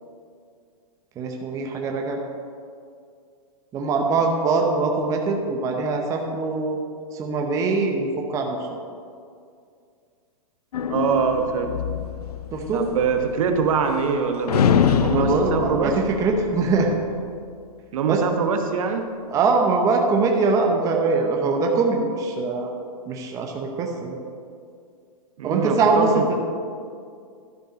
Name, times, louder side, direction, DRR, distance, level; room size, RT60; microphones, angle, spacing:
voice 1, 1.2-2.2 3.7-6.8 7.1-8.6 12.5-12.8 15.1-17.0 18.0-18.2 19.3-22.7 23.1-24.2 25.4-26.1, right 4 dB, 15° right, 1 dB, 0.7 m, -22 dB
sound 1, 10.7-14.2 14.5-17.2, left 7 dB, 80° left, 0.5 m, -25 dB
voice 2, 10.9-11.7 12.7-16.0 17.9-19.0 25.4-26.3, right 6 dB, 60° right, 5 dB, 1.1 m, -23 dB
12.0 x 5.5 x 5.1 m, 2.3 s
hypercardioid pair, 150°, 19 cm